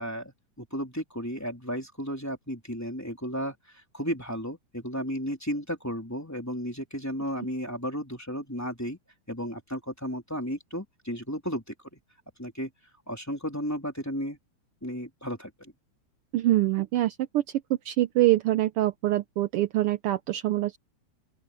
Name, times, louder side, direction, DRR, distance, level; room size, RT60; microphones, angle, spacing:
voice 1, 0.0-9.0 9.3-11.6 12.4-12.7 13.1-14.4 14.8-15.7, equal, 5° left, 3.2 m, -34 dB
voice 2, 16.3-17.4 17.8-20.8, right 15 dB, 80° right, 1.2 m, -24 dB
open air
omnidirectional pair, 3.3 m